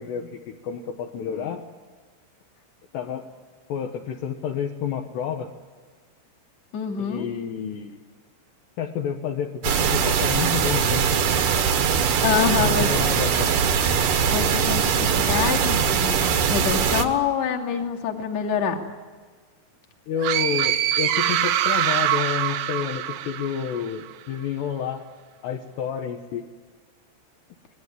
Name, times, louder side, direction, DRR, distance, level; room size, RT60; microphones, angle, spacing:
voice 1, 0.0-1.6 2.9-3.3 3.7-5.5 7.0-8.0 8.8-11.1 12.2-13.6 20.1-25.0 25.4-26.4, left 8 dB, 70° left, 2 dB, 3.1 m, -30 dB
voice 2, 6.7-7.3 12.2-12.9 14.3-18.8, left 7 dB, 40° left, 0 dB, 3.1 m, -26 dB
sound 1, 9.6-17.0, right 7 dB, 60° right, 2.4 m, -21 dB
sound 2, 20.2-23.9, right 12 dB, 85° right, 3.5 m, -24 dB
27.0 x 20.5 x 9.8 m, 1.5 s
omnidirectional pair, 5.7 m